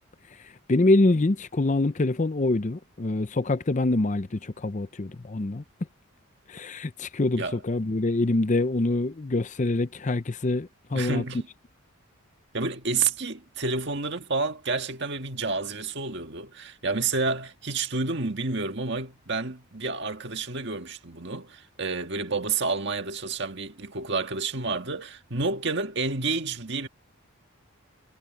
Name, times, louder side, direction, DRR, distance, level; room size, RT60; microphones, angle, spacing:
voice 1, 0.7-5.6 6.5-11.2, left 2 dB, 35° left, 0.6 m, -25 dB
voice 2, 10.9-11.5 12.5-26.9, right 4 dB, 55° right, 1.8 m, -29 dB
head